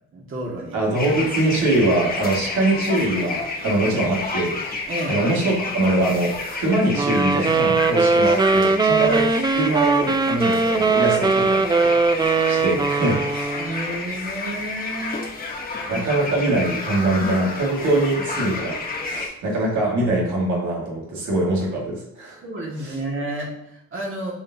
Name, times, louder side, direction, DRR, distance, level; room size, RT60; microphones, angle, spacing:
voice 1, 0.1-0.8 4.9-5.3 9.1-9.2 13.6-15.2 15.9-16.1 22.4-24.3, right 1 dB, 40° right, -2 dB, 2.2 m, -31 dB
voice 2, 0.7-4.6 5.1-11.6 12.2-13.6 15.9-18.8 19.1-22.4 22.8-22.9, right 2 dB, 70° right, -4 dB, 2.3 m, -23 dB
sound 1, 0.9-19.3, left 3 dB, 30° left, 1.3 m, -30 dB
sound 2, 6.9-13.8, right 4 dB, 15° right, 0.3 m, -20 dB
8.2 x 4.4 x 2.9 m, 0.79 s
cardioid pair, 90°, 30 cm